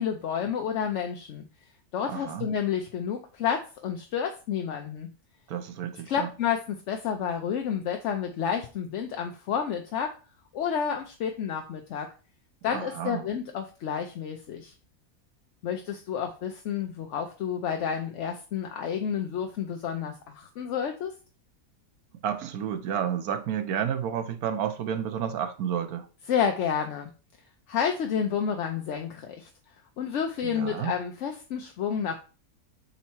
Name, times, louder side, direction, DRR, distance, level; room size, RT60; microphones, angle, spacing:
voice 1, 0.0-1.5 1.9-5.1 6.1-10.2 10.5-12.1 12.6-14.7 15.6-21.1 26.3-27.1 27.7-29.5 30.0-32.2, left 7 dB, 65° left, 0.9 m, -30 dB
voice 2, 2.1-2.5 5.5-6.3 12.7-13.3 22.2-26.1 30.4-30.9, right 8 dB, 90° right, 1.3 m, -31 dB
5.6 x 4.2 x 4.5 m
omnidirectional pair, 1.5 m